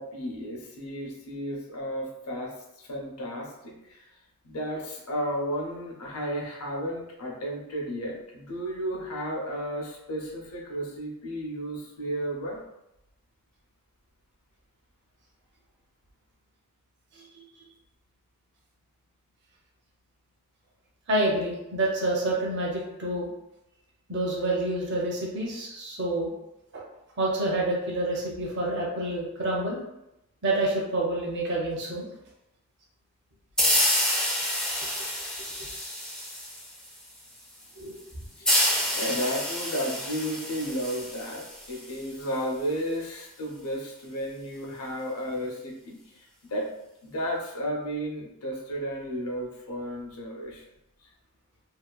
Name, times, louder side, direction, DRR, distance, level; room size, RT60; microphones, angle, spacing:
voice 1, 0.0-2.5 2.8-4.1 4.4-12.6 38.4-38.5 38.9-46.7 47.0-50.6, equal, 85° left, -1 dB, 0.7 m, -33 dB
voice 2, 21.1-23.3 24.1-26.3 26.7-26.8 27.2-29.8 30.4-32.1 35.6-35.7 37.8-38.0, right 2 dB, 50° right, -3 dB, 0.6 m, -28 dB
sound 1, 33.6-37.0 38.4-41.9, equal, 5° left, 0.4 m, -28 dB
2.7 x 2.3 x 2.2 m, 0.87 s
head